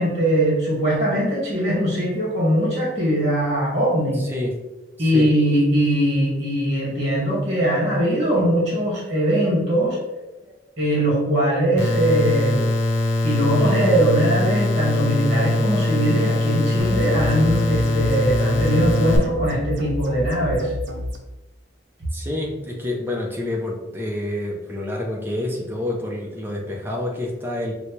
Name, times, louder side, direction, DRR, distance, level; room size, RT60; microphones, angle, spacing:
voice 1, 0.0-4.2 5.0-10.0 10.8-12.7 13.2-20.7, right 1 dB, 35° right, -6 dB, 1.5 m, -21 dB
voice 2, 4.1-4.6 5.0-5.3 10.5-10.6 22.1-27.7, left 1 dB, 10° right, -1 dB, 0.6 m, -28 dB
sound 1, 11.8-19.2, left 2 dB, 90° left, 0.7 m, -22 dB
sound 2, 16.8-21.2, left 1 dB, 80° right, 0.6 m, -30 dB
4.2 x 2.2 x 3.1 m, 1.1 s
head